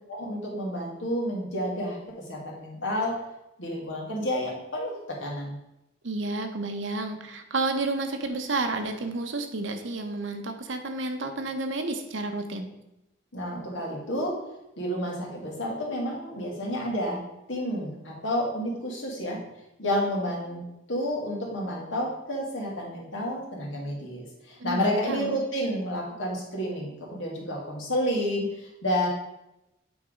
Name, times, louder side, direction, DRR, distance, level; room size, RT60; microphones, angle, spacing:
voice 1, 0.1-2.0 2.3-3.2 3.6-5.6 13.3-14.4 14.8-17.2 17.5-19.4 19.8-20.6 20.9-29.1, equal, 90° left, -3 dB, 2.1 m, -30 dB
voice 2, 6.0-12.7 24.6-25.3, right 2 dB, 85° right, 6 dB, 0.9 m, -31 dB
8.1 x 3.6 x 5.1 m, 0.89 s
head